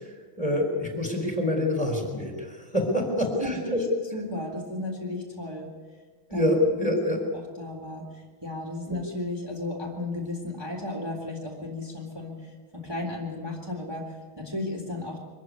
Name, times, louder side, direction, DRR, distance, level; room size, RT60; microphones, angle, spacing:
voice 1, 0.4-3.8 6.3-7.2 8.9-9.0, left 1 dB, 15° left, 2 dB, 3.9 m, -26 dB
voice 2, 3.1-3.8 4.1-5.7 6.3-6.4 7.3-8.0 8.4-15.2, left 2 dB, 10° right, -1 dB, 3.5 m, -34 dB
24.0 x 15.0 x 9.6 m, 1.5 s
omnidirectional pair, 2.3 m